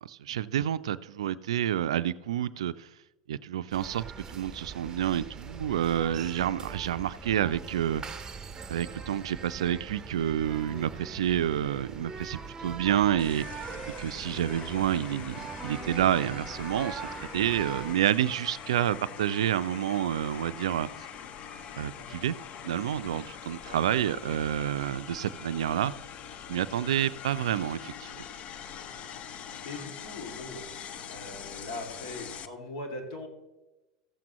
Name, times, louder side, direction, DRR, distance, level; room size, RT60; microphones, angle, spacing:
voice 1, 0.0-2.9 3.3-8.0 8.7-13.5 14.0-17.1 17.3-20.9 21.8-22.4 22.6-25.9 26.5-28.2, right 10 dB, 75° right, 15 dB, 0.4 m, -29 dB
sound 1, 3.7-17.9, right 5 dB, 20° right, 0.8 m, -42 dB
sound 2, 13.2-32.5, left 8 dB, 40° left, 0.6 m, -43 dB
sound 3, 20.7-25.7, equal, 80° left, 3.0 m, -60 dB
voice 2, 29.6-30.6 31.1-33.3, left 2 dB, 65° left, 2 dB, 2.5 m, -40 dB
15.0 x 7.3 x 3.0 m, 1.0 s
hypercardioid pair, 85°, 3 cm